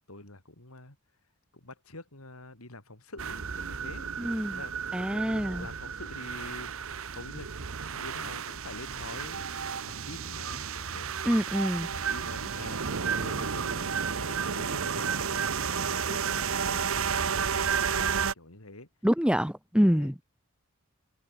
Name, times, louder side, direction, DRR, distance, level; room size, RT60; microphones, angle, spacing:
voice 1, 0.1-1.0 1.5-4.1 4.5-11.1 11.8-18.9 19.9-20.1, left 2 dB, 80° left, 5.4 m, -46 dB
sound 1, 3.2-18.3, right 6 dB, 70° right, 1.0 m, -32 dB
voice 2, 4.2-4.6 4.9-5.7 11.2-11.9 19.0-20.2, equal, 5° right, 1.5 m, -26 dB
head